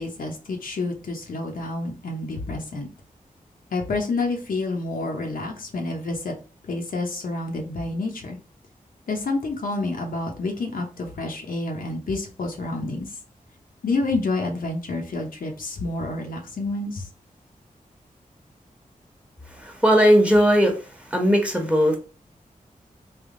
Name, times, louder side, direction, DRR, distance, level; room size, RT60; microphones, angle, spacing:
voice 1, 0.0-2.9 3.7-6.3 6.7-8.4 9.1-13.1 13.8-17.1, left 2 dB, 75° left, 2 dB, 0.9 m, -28 dB
voice 2, 19.6-20.7 21.1-22.0, equal, 10° right, 2 dB, 1.1 m, -18 dB
3.4 x 2.4 x 3.7 m, 0.34 s
wide cardioid pair, 70°, 15 cm